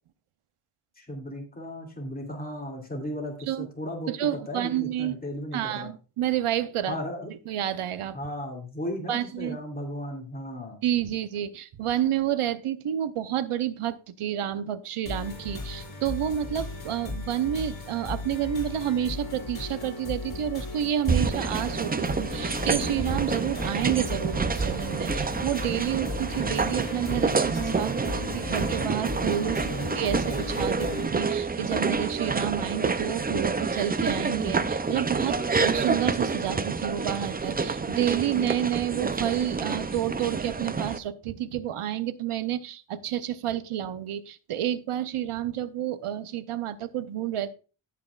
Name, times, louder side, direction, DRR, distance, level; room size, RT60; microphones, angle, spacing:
voice 1, 1.0-4.1 4.5-5.9 6.9-7.3 8.1-10.8 29.7-29.9, equal, 20° left, 1 dB, 2.5 m, -35 dB
voice 2, 4.1-5.1 5.5-7.0 7.5-8.2 9.1-9.6 10.8-47.5, right 11 dB, 85° right, 13 dB, 0.8 m, -30 dB
sound 1, 15.1-31.1, left 3 dB, 45° left, 3.8 m, -36 dB
sound 2, 21.1-41.0, right 4 dB, 20° right, 0.4 m, -28 dB
sound 3, 22.6-28.8, right 1 dB, 50° right, 3.4 m, -44 dB
17.5 x 6.0 x 2.3 m, 0.34 s
wide cardioid pair, 140°, 50 cm